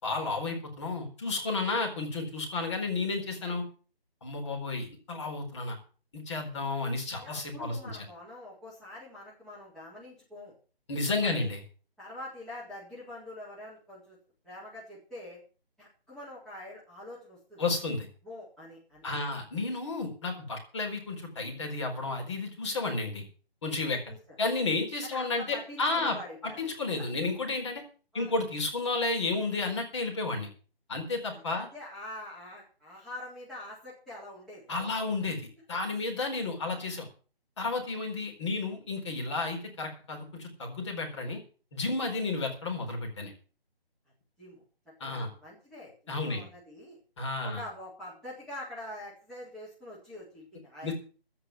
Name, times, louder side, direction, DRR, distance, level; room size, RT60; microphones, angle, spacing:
voice 1, 0.0-3.7 4.2-5.8 6.1-7.9 10.9-11.6 17.6-18.1 19.0-23.2 23.6-24.0 24.4-26.2 26.4-27.8 28.1-30.5 30.9-31.7 34.7-35.4 35.7-37.1 37.6-41.4 41.7-43.3 45.0-45.3 46.1-46.4 47.2-47.6 50.8-50.9, left 3 dB, 30° left, 1 dB, 4.3 m, -32 dB
voice 2, 7.1-10.5 11.2-11.5 12.0-14.2 14.4-15.4 15.8-17.6 18.2-19.1 24.0-24.4 25.0-26.6 27.0-27.1 28.1-28.3 31.3-34.7 36.6-36.9 44.4-44.6 45.1-47.0 47.4-50.9, left 1 dB, ahead, -11 dB, 3.7 m, -45 dB
16.0 x 5.9 x 9.1 m, 0.39 s
figure-of-eight pair, 170°, 31 cm